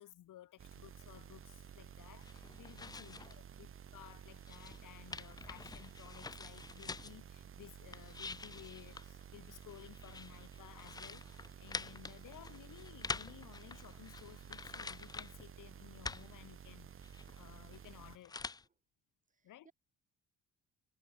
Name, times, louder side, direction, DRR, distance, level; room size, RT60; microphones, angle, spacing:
voice 1, 0.0-18.4 19.4-19.7, left 13 dB, 75° left, 4.9 m, -57 dB
sound 1, 0.6-18.2, right 8 dB, 40° right, 2.9 m, -53 dB
sound 2, 2.2-3.4 3.7-7.2 7.7-15.5 15.8-18.6, left 4 dB, 15° left, 0.3 m, -47 dB
voice 2, 2.9-3.2 19.3-19.7, right 5 dB, 25° right, 4.7 m, -67 dB
cardioid pair, 165°, 32 cm